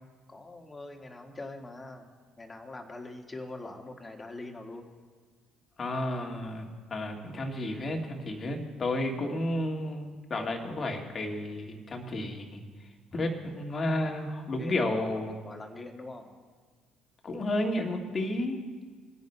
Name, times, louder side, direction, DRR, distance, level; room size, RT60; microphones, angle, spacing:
voice 1, 0.3-2.1 2.4-4.9 13.1-13.2 14.0-14.2 14.5-15.1 15.4-16.3, left 2 dB, 20° left, 3 dB, 1.6 m, -43 dB
voice 2, 5.8-12.6 13.1-15.4 17.2-18.6, left 1 dB, 35° left, 2 dB, 1.7 m, -32 dB
22.0 x 10.5 x 2.2 m, 1.5 s
hypercardioid pair, 55°, 0 cm